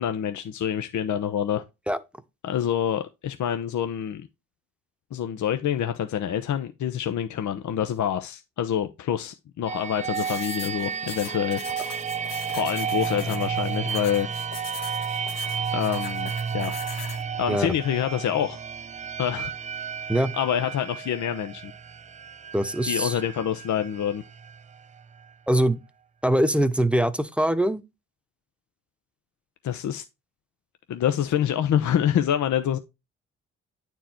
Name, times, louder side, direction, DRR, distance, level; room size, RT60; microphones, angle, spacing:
voice 1, 0.0-1.6 2.4-4.3 5.1-11.6 12.5-14.3 15.7-16.7 17.3-18.6 19.2-19.5 20.3-21.7 22.8-24.2 29.6-30.0 30.9-32.8, left 9 dB, 65° left, 0.8 m, -26 dB
sound 1, 9.7-25.3, right 7 dB, 25° right, 0.3 m, -32 dB
sound 2, 10.1-17.2, left 7 dB, 80° left, 1.4 m, -40 dB
voice 2, 22.5-23.2 25.5-25.8 26.2-27.8, right 1 dB, 5° right, 1.0 m, -22 dB
9.1 x 4.6 x 4.4 m
supercardioid pair, 55°, 32 cm